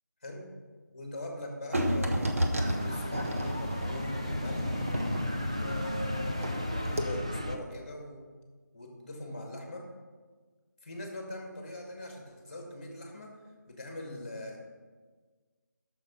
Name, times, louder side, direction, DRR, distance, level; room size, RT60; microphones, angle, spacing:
voice 1, 0.9-4.9 5.5-8.2 8.7-9.9 10.8-13.3 13.7-14.6, left 1 dB, 25° left, 2 dB, 1.5 m, -42 dB
sound 1, 1.7-6.6 6.9-7.0, equal, 45° right, 1.1 m, -32 dB
sound 2, 2.6-7.6, left 1 dB, 20° right, 0.3 m, -34 dB
8.7 x 6.6 x 5.7 m, 1.5 s
figure-of-eight pair, 180°, 10 cm